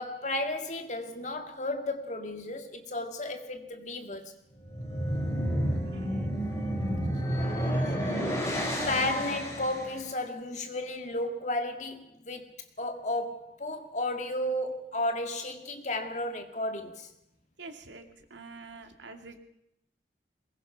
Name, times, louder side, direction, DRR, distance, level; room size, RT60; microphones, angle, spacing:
voice 1, 0.0-4.3 8.9-12.5 12.8-17.1, left 1 dB, 40° left, 2.1 m, -33 dB
sound 1, 4.6-10.0, equal, 15° left, 4.7 m, -30 dB
voice 2, 5.8-7.0 7.7-8.5 17.6-19.4, right 3 dB, 85° right, 2.5 m, -48 dB
22.5 x 21.0 x 5.8 m
head